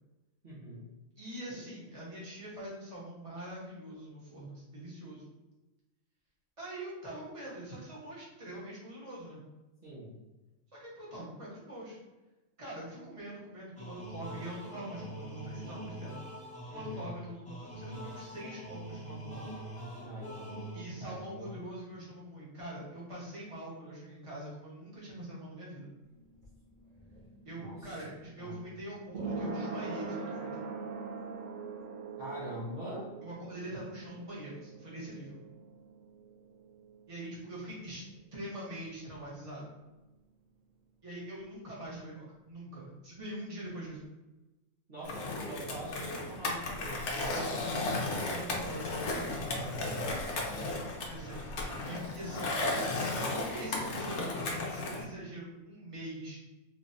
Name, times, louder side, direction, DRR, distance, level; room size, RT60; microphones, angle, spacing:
voice 1, 0.4-0.8 9.8-10.2 16.7-17.1 20.0-21.6 27.5-28.0 28.4-28.6 32.2-33.1 44.9-47.8 49.8-50.0, right 1 dB, 45° right, -10 dB, 1.2 m, -44 dB
voice 2, 1.2-5.3 6.6-9.4 10.7-12.0 12.6-16.1 16.7-19.4 20.7-25.9 27.4-30.6 33.2-35.4 37.1-38.0 38.3-39.7 41.0-44.0 48.0-49.5 51.0-52.6 53.5-56.4, right 1 dB, 25° right, -7 dB, 1.3 m, -43 dB
sound 1, 13.8-21.1, right 1 dB, 5° left, 0.9 m, -44 dB
sound 2, 26.0-37.6 37.8-37.9, right 4 dB, 85° right, 1.3 m, -42 dB
Skateboard, 45.0-55.0, left 2 dB, 60° left, 0.9 m, -35 dB
3.6 x 3.1 x 2.6 m, 1.1 s
omnidirectional pair, 1.4 m